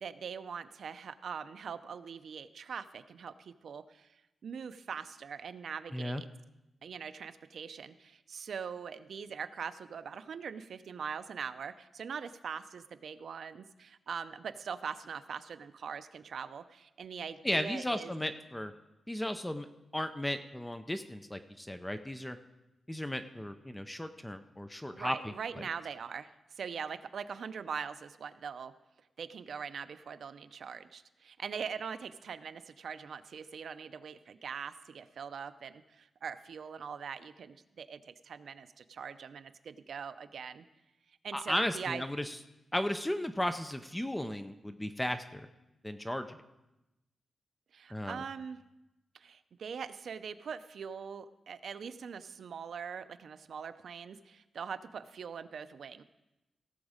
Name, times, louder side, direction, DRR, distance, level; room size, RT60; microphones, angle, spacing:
voice 1, 0.0-4.1 4.4-6.3 6.8-18.1 24.9-26.3 26.6-28.7 29.2-40.6 41.2-42.0 47.7-48.6 49.1-56.0, right 6 dB, 65° right, 11 dB, 0.5 m, -42 dB
voice 2, 17.4-18.7 19.1-19.7 19.9-22.4 22.9-25.7 41.3-42.4 42.7-45.5 45.8-46.4 47.9-48.2, left 1 dB, 5° left, 9 dB, 0.5 m, -35 dB
17.0 x 7.1 x 5.0 m, 0.97 s
wide cardioid pair, 165°, 0 cm